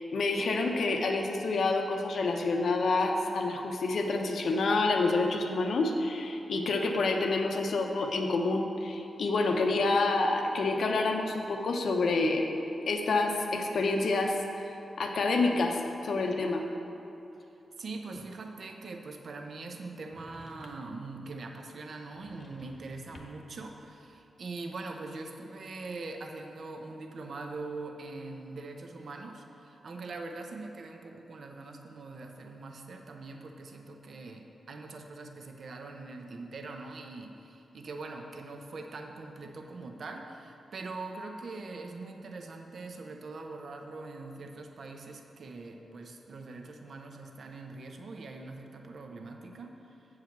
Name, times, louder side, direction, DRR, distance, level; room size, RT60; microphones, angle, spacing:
voice 1, 0.0-12.5 12.9-16.7, left 3 dB, 70° left, 3 dB, 0.8 m, -28 dB
voice 2, 17.8-50.1, right 3 dB, 60° right, 3 dB, 0.7 m, -42 dB
sound 1, 20.1-21.0 22.1-23.6, left 1 dB, 35° left, 1.0 m, -53 dB
7.9 x 4.9 x 7.1 m, 2.8 s
wide cardioid pair, 115°, 0 cm